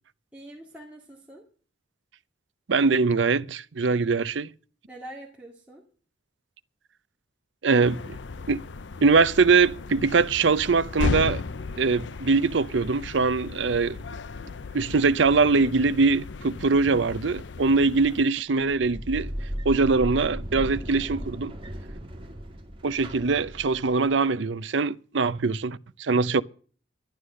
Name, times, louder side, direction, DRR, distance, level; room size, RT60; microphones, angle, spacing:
voice 1, 0.3-1.4 4.9-5.8, right 1 dB, 5° right, 2.4 m, -44 dB
voice 2, 2.7-4.5 7.6-8.0 8.5-8.6 9.0-11.4 11.7-14.0 14.7-19.3 19.6-21.5 22.8-26.4, right 4 dB, 75° right, 0.6 m, -22 dB
sound 1, 7.8-18.3, left 3 dB, 70° left, 0.6 m, -35 dB
sound 2, 18.5-24.1, equal, 30° right, 2.0 m, -36 dB
13.0 x 11.5 x 6.4 m
head